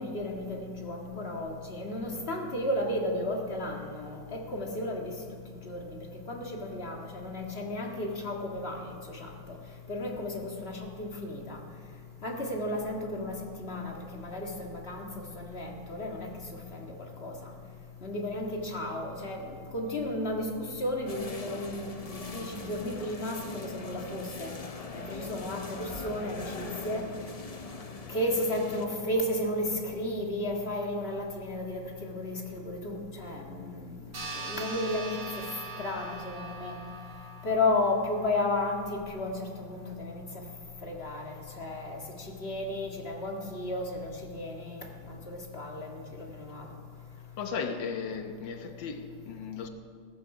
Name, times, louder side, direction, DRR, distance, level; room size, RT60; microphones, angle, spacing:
voice 1, 0.0-5.2 5.5-6.0 6.3-9.6 9.9-11.6 12.2-15.1 15.4-16.3 16.7-17.5 18.0-24.5 24.9-27.1 28.1-33.9 34.3-35.5 35.8-36.8 37.4-40.2 40.8-46.7, left 1 dB, 35° left, 0 dB, 1.9 m, -33 dB
sound 1, 21.1-28.9, left 3 dB, 60° left, 0.4 m, -42 dB
sound 2, 34.1-39.0, right 2 dB, 65° right, 2.9 m, -42 dB
voice 2, 47.4-49.7, left 5 dB, 80° left, 6 dB, 1.7 m, -36 dB
17.0 x 14.0 x 4.9 m, 2.1 s
omnidirectional pair, 2.0 m